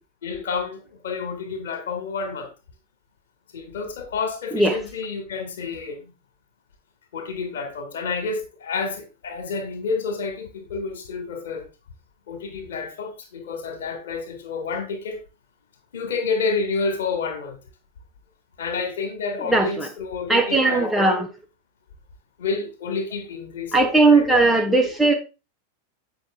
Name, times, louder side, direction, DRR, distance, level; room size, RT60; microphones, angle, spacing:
voice 1, 0.2-2.5 3.5-6.1 7.1-11.6 12.3-15.2 15.9-17.6 18.6-21.2 22.4-24.6, left 4 dB, 60° left, 1.9 m, -29 dB
voice 2, 19.4-19.9 20.3-21.3 23.7-25.1, right 3 dB, 5° right, 1.2 m, -18 dB
7.7 x 5.7 x 3.6 m
figure-of-eight pair, 90°, 0 cm